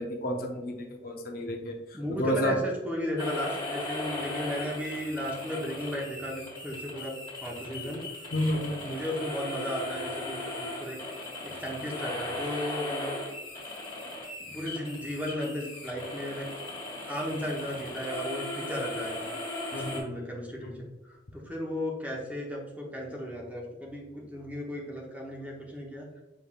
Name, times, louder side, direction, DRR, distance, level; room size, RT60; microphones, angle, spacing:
voice 1, 0.0-2.6 8.3-8.9 19.7-20.1 20.6-20.7, equal, 55° left, 3 dB, 0.6 m, -31 dB
voice 2, 1.9-7.1 7.4-8.0 8.5-11.0 11.4-13.2 14.4-16.5 17.1-19.2 19.8-20.7 21.0-26.2, equal, 10° right, -2 dB, 0.8 m, -35 dB
sound 1, 3.2-20.0, left 2 dB, 25° left, 1.4 m, -38 dB
5.7 x 3.3 x 2.3 m, 1.1 s
head